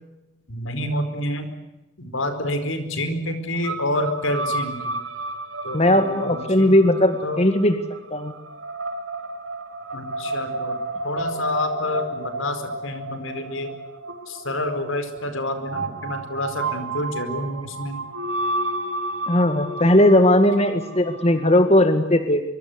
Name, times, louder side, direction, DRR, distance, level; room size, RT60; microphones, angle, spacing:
voice 1, 0.5-1.5 2.0-5.0 5.6-6.9 7.2-7.4 9.9-10.8 11.0-13.7 14.3-18.0, left 1 dB, 85° left, 9 dB, 4.7 m, -28 dB
sound 1, 3.6-21.8, right 2 dB, 70° right, 3.4 m, -32 dB
voice 2, 5.7-7.8 8.1-8.3 19.3-22.4, left 1 dB, 30° left, 8 dB, 1.9 m, -18 dB
24.5 x 24.5 x 8.1 m, 0.98 s
head